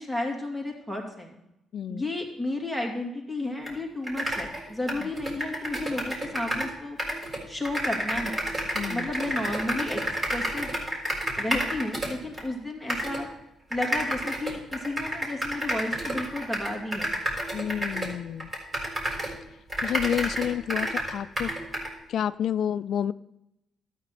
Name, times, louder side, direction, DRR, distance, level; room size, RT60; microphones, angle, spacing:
voice 1, 0.0-1.4 1.9-7.0 7.5-8.5 8.9-10.0 10.3-10.7 11.4-13.3 13.7-17.1, left 2 dB, 5° right, 1 dB, 2.7 m, -32 dB
voice 2, 1.7-2.1 5.0-5.1 8.7-9.1 17.5-18.5 19.8-21.5 22.1-23.1, left 9 dB, 65° left, 15 dB, 0.3 m, -29 dB
sound 1, 3.7-3.8 4.0-6.7 7.0-12.4 12.9-13.2 13.7-19.4 19.7-21.9, right 1 dB, 25° right, 4.0 m, -30 dB
12.5 x 9.0 x 4.3 m, 0.87 s
cardioid pair, 90°, 0 cm